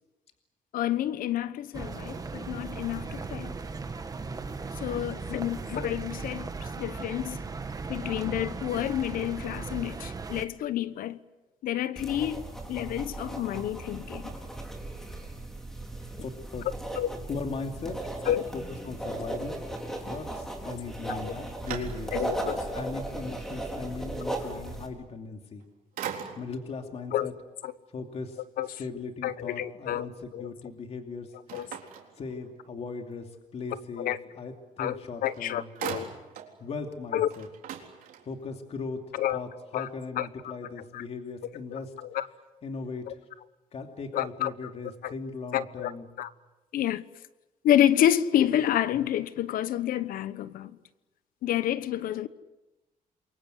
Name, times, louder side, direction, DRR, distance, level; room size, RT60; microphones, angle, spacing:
voice 1, 0.7-3.5 4.8-6.5 6.8-7.4 7.9-11.2 11.6-12.4 12.7-14.3 17.0-17.1 18.3-18.5 21.1-21.3 22.1-22.6 27.1-27.3 27.6-27.7 28.6-28.7 29.2-30.1 30.3-30.5 31.5-31.7 34.0-34.2 34.8-35.0 35.2-36.1 37.1-37.3 39.2-39.4 39.7-39.9 40.2-40.3 42.1-42.3 43.1-43.2 44.1-44.5 45.0-45.1 45.5-45.9 46.2-46.3 46.7-47.0 47.6-50.7 51.4-52.3, left 11 dB, 85° left, 1.1 m, -28 dB
sound 1, 1.7-10.5, right 4 dB, 25° right, 1.6 m, -37 dB
voice 2, 4.9-5.4 16.2-16.6 17.3-18.0 18.5-19.6 20.0-22.2 22.7-25.6 26.4-27.3 27.9-28.4 28.8-31.6 32.2-35.7 36.6-37.5 38.3-39.0 39.3-41.9 42.6-43.2 43.7-46.1, left 4 dB, 45° left, 2.6 m, -38 dB
sound 2, 12.0-24.9, right 2 dB, 5° left, 4.5 m, -37 dB
sound 3, 21.0-22.4 23.0-23.1 25.3-25.6 26.0-26.7 31.5-32.8 34.9-35.0 35.2-36.6 36.9-37.0 37.3-38.5, right 9 dB, 80° right, 3.9 m, -40 dB
28.0 x 23.5 x 7.9 m
cardioid pair, 125°, 14 cm